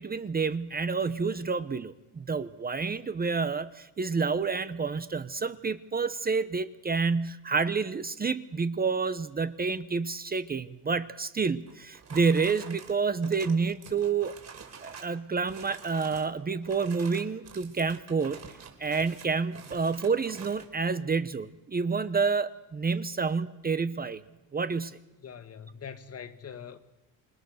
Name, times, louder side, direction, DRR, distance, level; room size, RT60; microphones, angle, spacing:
voice 1, 0.0-14.3 14.8-18.4 18.8-24.2 24.5-25.0, right 5 dB, 25° right, 0.9 m, -29 dB
sound 1, 11.7-15.2 15.4-16.3 16.6-20.7, right 6 dB, 45° right, 4.1 m, -47 dB
voice 2, 25.2-26.8, left 7 dB, 40° left, 1.8 m, -43 dB
27.5 x 23.0 x 6.5 m
cardioid pair, 130°, 36 cm